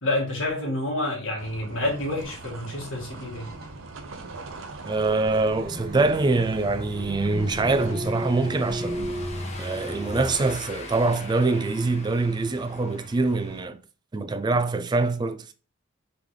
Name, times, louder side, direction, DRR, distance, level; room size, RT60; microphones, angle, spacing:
voice 1, 0.0-3.5, left 1 dB, 70° left, 1.7 m, -28 dB
sound 1, 1.4-7.9, right 3 dB, 70° right, 0.6 m, -42 dB
sound 2, 1.8-10.5, right 1 dB, 50° right, 1.3 m, -36 dB
voice 2, 4.8-9.1 9.6-13.8 14.1-15.5, right 3 dB, 20° right, 0.3 m, -24 dB
Car passing by / Engine, 6.9-13.6, left 2 dB, 35° left, 0.7 m, -40 dB
3.6 x 3.4 x 3.0 m
head